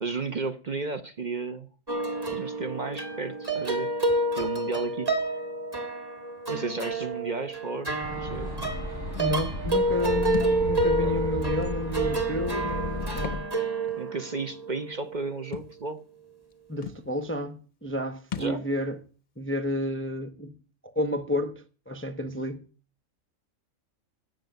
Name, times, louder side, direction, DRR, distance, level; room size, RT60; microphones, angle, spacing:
voice 1, 0.0-1.7 2.3-3.9 4.4-5.4 6.5-8.5 11.0-11.2 14.0-16.0 18.4-18.6, right 3 dB, 40° right, 0.9 m, -33 dB
sound 1, 1.9-15.6, right 2 dB, 20° right, 1.6 m, -29 dB
sound 2, 8.0-13.4, left 2 dB, 60° right, 5.3 m, -34 dB
voice 2, 9.2-13.4 16.7-19.0 19.4-20.5 21.0-22.6, left 1 dB, 10° left, 0.6 m, -31 dB
Thump thud, 10.3-10.6 11.6-11.8 13.1-13.5 13.9-14.0 15.5-15.7 16.5-16.6 16.8-17.0 18.3-18.6, left 8 dB, 40° left, 0.8 m, -36 dB
14.5 x 5.4 x 9.1 m
omnidirectional pair, 1.4 m